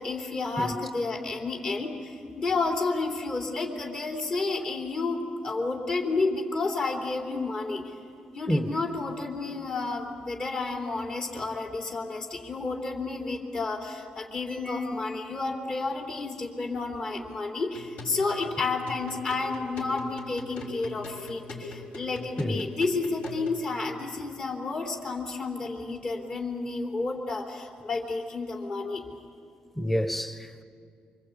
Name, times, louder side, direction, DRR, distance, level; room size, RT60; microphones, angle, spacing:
voice 1, 0.0-7.9 8.3-29.0, left 3 dB, 40° left, 3.3 m, -31 dB
sound 1, 17.7-23.6, left 2 dB, 65° left, 6.2 m, -41 dB
voice 2, 29.8-30.6, equal, 5° left, 1.2 m, -28 dB
27.0 x 25.0 x 8.5 m
cardioid pair, 140°, 3 cm